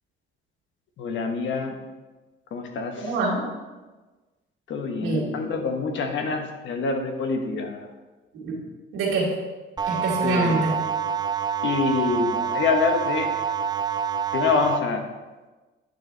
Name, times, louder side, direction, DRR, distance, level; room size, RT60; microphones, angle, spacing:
voice 1, 1.0-1.7 2.5-3.1 4.7-7.9 10.2-10.7 11.6-13.3 14.3-15.1, left 4 dB, 70° left, 4 dB, 1.2 m, -26 dB
voice 2, 3.0-3.5 5.0-5.3 8.3-8.6 8.9-9.3 9.9-10.8, right 2 dB, 90° right, -4 dB, 2.5 m, -25 dB
sound 1, 9.8-14.8, right 7 dB, 20° right, 0.3 m, -27 dB
9.9 x 6.5 x 3.4 m, 1.2 s
cardioid pair, 90°, 20 cm